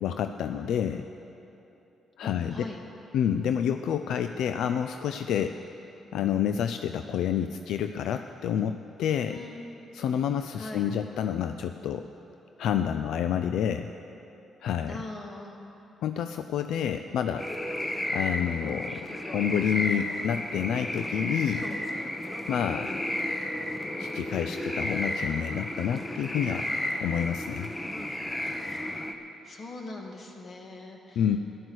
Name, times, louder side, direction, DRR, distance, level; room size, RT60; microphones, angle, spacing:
voice 1, 0.0-1.0 2.2-2.7 3.1-5.5 6.1-9.4 9.9-12.1 12.6-13.9 14.6-15.0 16.0-17.5 18.1-21.7 22.5-22.9 24.0-26.7 27.0-27.7 31.2-31.4, left 9 dB, 80° left, 8 dB, 0.4 m, -28 dB
voice 2, 2.2-2.8 9.3-10.0 10.5-10.9 14.9-15.6 22.6-23.0 28.9-29.0 29.4-31.3, left 2 dB, 40° left, 1 dB, 2.1 m, -42 dB
sound 1, 17.4-29.1, left 1 dB, 15° left, 1.0 m, -33 dB
13.5 x 11.0 x 6.4 m, 2.9 s
cardioid pair, 90°, 0 cm